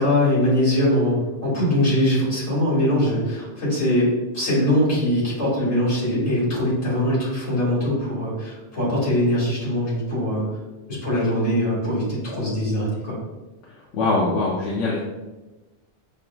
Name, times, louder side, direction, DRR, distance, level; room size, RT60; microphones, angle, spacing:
voice 1, 0.0-10.5 10.9-13.2, left 1 dB, 70° left, -7 dB, 2.0 m, -22 dB
voice 2, 13.9-15.0, left 3 dB, 90° left, -5 dB, 1.0 m, -22 dB
5.6 x 2.5 x 2.2 m, 1.1 s
omnidirectional pair, 1.2 m